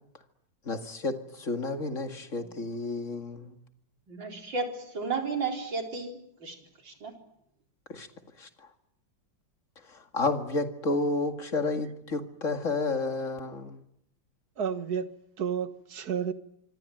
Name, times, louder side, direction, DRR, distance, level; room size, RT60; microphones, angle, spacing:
voice 1, 0.7-3.5 7.9-8.1 8.4-8.5 9.9-13.8, left 3 dB, 40° left, 2.5 m, -31 dB
voice 2, 4.1-6.6 6.8-7.2, right 4 dB, 80° right, 4.9 m, -33 dB
voice 3, 14.6-16.3, right 7 dB, 55° right, 1.9 m, -31 dB
26.0 x 24.5 x 9.2 m
omnidirectional pair, 2.0 m